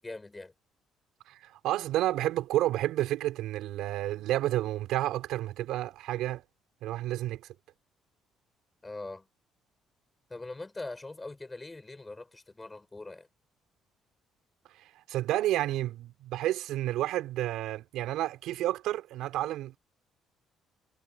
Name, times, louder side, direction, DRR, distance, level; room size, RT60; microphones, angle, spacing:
voice 1, 0.0-0.5 8.8-9.3 10.3-13.3, left 2 dB, 15° left, 6.7 m, -42 dB
voice 2, 1.3-6.4 6.8-7.4 14.8-19.8, right 14 dB, 85° right, 5.2 m, -30 dB
cardioid pair, 155°, 0 cm